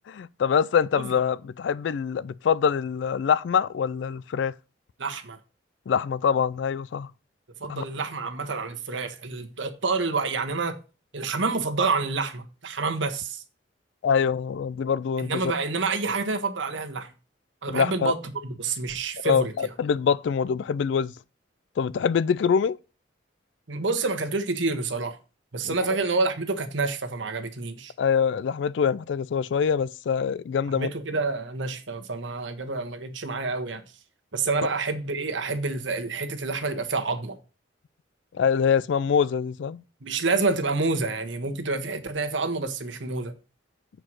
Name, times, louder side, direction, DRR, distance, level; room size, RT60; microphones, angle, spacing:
voice 1, 0.1-4.5 5.9-7.1 7.7-7.8 14.0-15.5 17.7-18.1 19.2-21.1 21.8-22.8 25.6-26.0 28.0-30.9 38.4-39.8, left 7 dB, 70° left, 0.3 m, -24 dB
voice 2, 5.0-5.4 7.6-10.7 11.1-13.4 15.2-17.1 17.6-18.1 18.4-19.5 23.7-25.2 25.5-27.9 30.8-33.8 34.3-37.4 40.0-43.3, right 3 dB, 75° right, 1.3 m, -28 dB
7.7 x 4.7 x 6.1 m
head